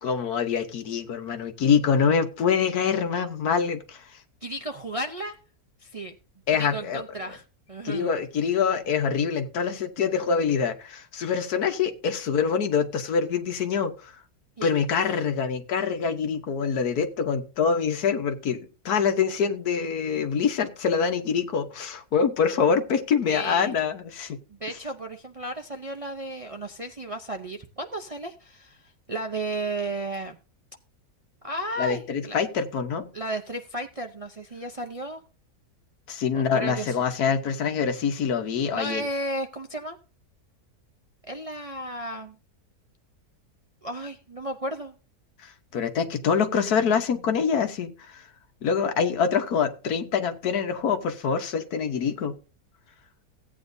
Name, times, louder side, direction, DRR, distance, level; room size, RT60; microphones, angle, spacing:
voice 1, 0.0-4.2 6.5-7.0 7.8-14.1 14.6-24.4 31.8-33.1 36.1-39.0 45.4-48.3 48.6-52.4, left 6 dB, 70° left, 1.6 m, -25 dB
voice 2, 4.4-5.4 5.8-6.2 6.5-7.4 7.7-8.1 14.6-14.7 23.3-23.8 24.5-30.4 31.4-32.4 33.1-35.2 36.3-37.0 38.7-40.0 41.3-42.4 43.8-44.9, right 1 dB, 45° right, 0.4 m, -34 dB
16.0 x 8.8 x 2.7 m
omnidirectional pair, 1.7 m